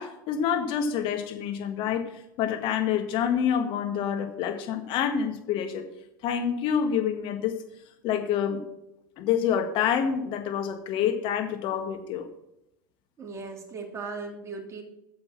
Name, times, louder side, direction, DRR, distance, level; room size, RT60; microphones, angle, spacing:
voice 1, 0.0-5.8 6.2-7.6 8.0-8.6 9.2-12.3, left 8 dB, 50° left, 6 dB, 1.7 m, -27 dB
voice 2, 13.2-14.8, right 4 dB, 25° right, -1 dB, 2.8 m, -37 dB
9.5 x 6.8 x 6.0 m, 0.84 s
hypercardioid pair, 85°, 11 cm